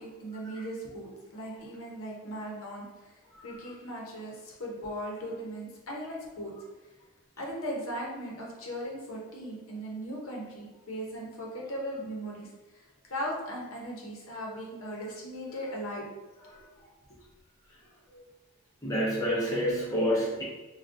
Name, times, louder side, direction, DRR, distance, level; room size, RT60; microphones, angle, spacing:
voice 1, 0.0-3.1 3.4-6.5 7.4-12.5 13.1-16.1 17.1-17.2, equal, 70° left, -2 dB, 0.7 m, -38 dB
voice 2, 18.8-20.4, equal, 15° left, -6 dB, 0.5 m, -28 dB
3.5 x 2.2 x 2.5 m, 1.1 s
head